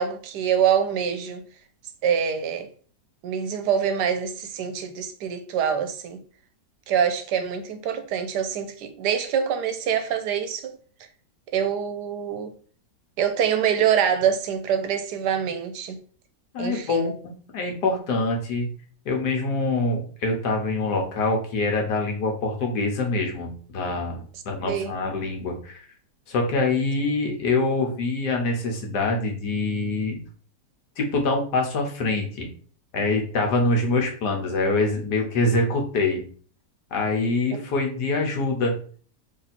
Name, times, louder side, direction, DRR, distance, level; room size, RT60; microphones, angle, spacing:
voice 1, 0.0-1.4 2.0-2.7 3.2-6.2 6.9-10.8 11.5-12.5 13.2-16.0 16.6-17.1 24.6-24.9, right 8 dB, 80° right, 1.2 m, -25 dB
voice 2, 16.5-18.7 19.0-25.8 26.3-30.2 31.0-32.5 32.9-36.2 36.9-38.7, left 2 dB, 75° left, 1.5 m, -25 dB
3.4 x 2.8 x 4.1 m
omnidirectional pair, 1.8 m